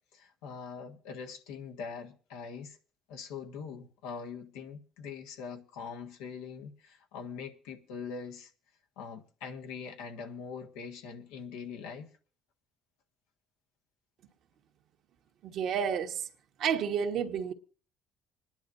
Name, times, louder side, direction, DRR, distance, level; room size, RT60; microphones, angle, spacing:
voice 1, 0.1-2.8 3.1-8.5 9.0-12.1, left 6 dB, 90° left, 1.5 m, -42 dB
voice 2, 15.4-16.3 16.6-17.5, right 7 dB, 70° right, 1.4 m, -30 dB
26.5 x 10.5 x 2.6 m
supercardioid pair, 80°, 0 cm